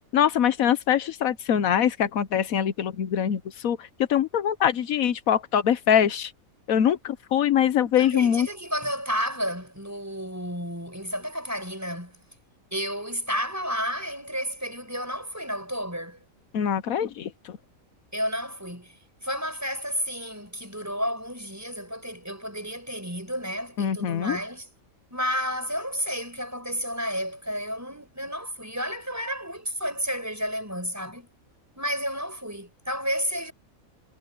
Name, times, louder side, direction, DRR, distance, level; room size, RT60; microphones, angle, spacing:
voice 1, 0.1-6.3 6.7-8.5 16.5-17.6 23.8-24.4, left 9 dB, 80° left, 1.3 m, -23 dB
voice 2, 8.0-12.1 12.7-16.2 18.1-24.7 25.1-31.3 31.8-33.5, equal, 10° right, 5.8 m, -31 dB
omnidirectional pair, 1.4 m